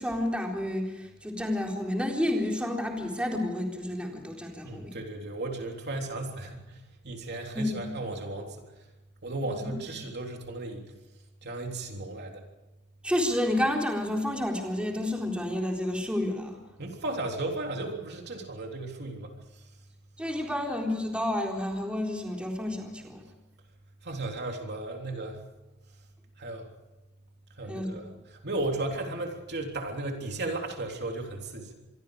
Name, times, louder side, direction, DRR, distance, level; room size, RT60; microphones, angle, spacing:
voice 1, 0.0-5.0 7.5-7.7 9.4-9.8 13.0-16.6 20.2-23.2 27.7-28.0, left 1 dB, 5° right, 0 dB, 4.0 m, -30 dB
voice 2, 4.6-8.6 9.2-10.8 11.4-12.4 16.8-19.3 24.0-25.4 26.4-26.7 27.6-28.1 28.4-31.7, right 2 dB, 50° right, 2 dB, 3.5 m, -35 dB
26.5 x 23.0 x 5.0 m, 1.1 s
head